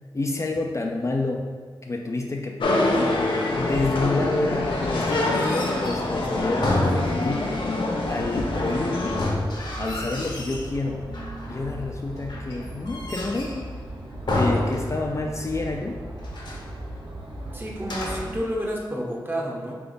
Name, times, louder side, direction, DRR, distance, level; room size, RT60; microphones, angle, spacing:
voice 1, 0.1-1.5 1.8-3.3 3.6-7.6 8.1-9.2 9.8-11.0 11.5-13.7 14.3-16.0, left 2 dB, 35° left, 1 dB, 0.4 m, -28 dB
sound 1, 2.6-9.3, left 2 dB, 85° left, 0.6 m, -25 dB
sound 2, 5.2-7.6 9.0-10.7 11.1-11.7 12.3-13.7 14.3-15.4 15.6-15.7 16.2-16.7 17.8-18.4, left 1 dB, 60° left, 1.0 m, -29 dB
sound 3, 8.1-18.4, right 1 dB, 70° right, 0.9 m, -38 dB
voice 2, 17.5-19.7, equal, 25° right, -2 dB, 0.9 m, -30 dB
3.9 x 3.4 x 3.9 m, 1.5 s
cardioid pair, 55°, 9 cm